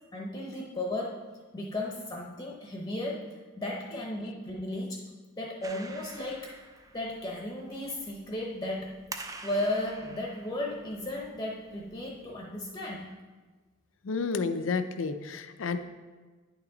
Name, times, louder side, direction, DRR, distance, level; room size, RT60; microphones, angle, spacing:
voice 1, 0.1-1.2 1.5-5.1 5.4-6.6 6.9-9.0 9.4-13.2, left 1 dB, 20° left, -1 dB, 0.8 m, -35 dB
Clapping, 5.6-12.3, right 3 dB, 15° right, 0.4 m, -47 dB
voice 2, 14.0-15.8, left 4 dB, 65° left, 10 dB, 0.5 m, -30 dB
9.6 x 5.9 x 3.9 m, 1.3 s
head